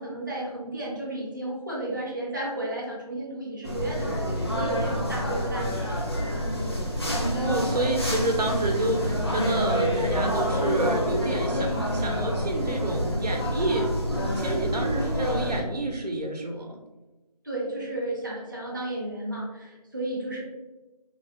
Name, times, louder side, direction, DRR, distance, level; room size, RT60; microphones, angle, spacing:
voice 1, 0.0-6.0 17.4-20.4, right 1 dB, 30° right, -5 dB, 0.4 m, -33 dB
sound 1, 3.6-15.6, equal, 40° left, 0.5 m, -27 dB
voice 2, 7.2-16.8, right 2 dB, 85° right, 2 dB, 0.7 m, -29 dB
3.2 x 2.1 x 2.6 m, 1.1 s
figure-of-eight pair, 170°, 20 cm